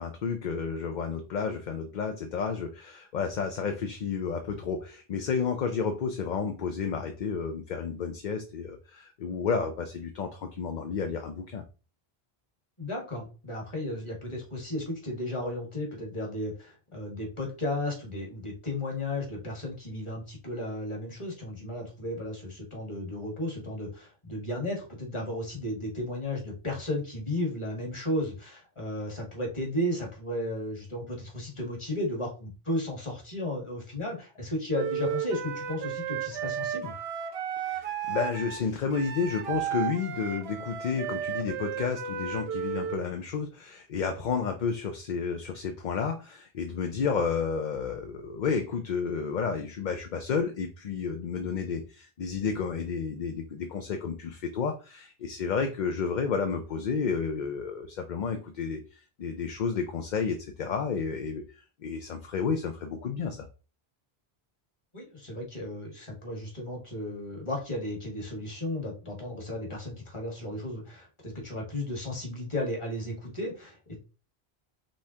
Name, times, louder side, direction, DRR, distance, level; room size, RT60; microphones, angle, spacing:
voice 1, 0.0-11.6 37.6-63.5, left 5 dB, 55° left, 6 dB, 0.6 m, -31 dB
voice 2, 12.8-36.9 64.9-73.9, left 1 dB, 30° left, -1 dB, 1.6 m, -34 dB
Wind instrument woodwind instrument, 34.7-43.1, right 8 dB, 75° right, 0.9 m, -34 dB
5.3 x 3.5 x 2.8 m, 0.33 s
omnidirectional pair, 1.1 m